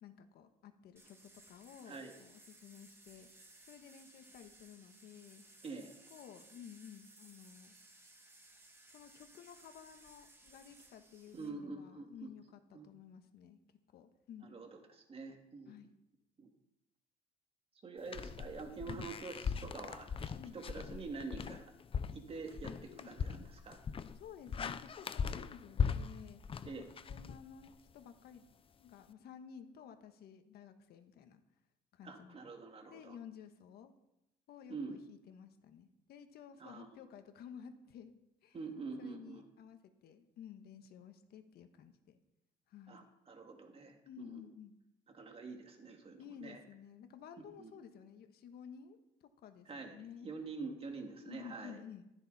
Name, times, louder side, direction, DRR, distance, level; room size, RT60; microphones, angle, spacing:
voice 1, 0.0-3.3 3.7-5.4 6.1-7.8 8.9-13.6 13.9-14.5 15.7-15.9 18.8-19.0 20.4-20.6 22.9-23.1 24.1-26.4 26.8-28.5 28.8-31.4 31.9-32.4 32.9-33.9 34.5-38.1 38.4-38.6 39.0-42.2 42.7-43.1 44.0-44.7 46.2-50.3 51.2-52.0, left 8 dB, 70° left, 7 dB, 1.5 m, -53 dB
sound 1, 1.0-11.5, right 2 dB, 15° right, 2.1 m, -61 dB
voice 2, 5.6-5.9 11.3-12.3 12.7-12.9 14.4-15.7 16.4-16.5 17.8-21.7 22.1-23.8 26.6-26.9 32.0-33.2 34.7-35.0 36.6-36.9 38.5-39.5 42.9-44.4 45.1-46.6 47.6-47.7 49.7-50.0 50.2-51.8, right 4 dB, 35° right, 3 dB, 2.6 m, -46 dB
sound 2, 18.1-27.9, left 6 dB, 35° left, 0.7 m, -39 dB
15.0 x 13.0 x 4.3 m, 0.88 s
cardioid pair, 110°, 17 cm